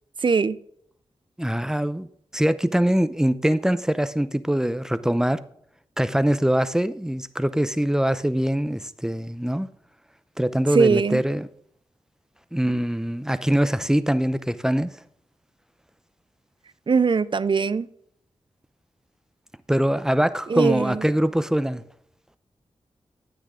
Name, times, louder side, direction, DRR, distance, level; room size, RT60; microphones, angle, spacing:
voice 1, 0.2-0.6 10.7-11.2 16.9-17.9 20.5-21.0, right 5 dB, 45° right, 0.5 m, -21 dB
voice 2, 1.4-2.1 2.3-5.4 6.0-9.7 10.4-11.5 12.5-14.9 19.7-21.8, equal, 5° right, 0.6 m, -23 dB
10.0 x 9.0 x 3.8 m
cardioid pair, 60°, 11 cm